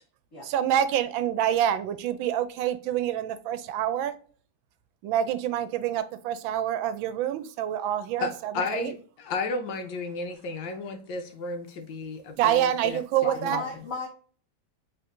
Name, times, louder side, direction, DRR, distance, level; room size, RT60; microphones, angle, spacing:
voice 1, 0.4-4.1 5.0-8.9 12.4-13.6, right 11 dB, 85° right, 11 dB, 1.3 m, -27 dB
voice 2, 8.2-13.6, left 3 dB, 75° left, 5 dB, 1.5 m, -33 dB
voice 3, 13.2-14.1, left 3 dB, 50° left, -3 dB, 1.2 m, -34 dB
4.4 x 3.6 x 2.5 m, 0.42 s
omnidirectional pair, 2.1 m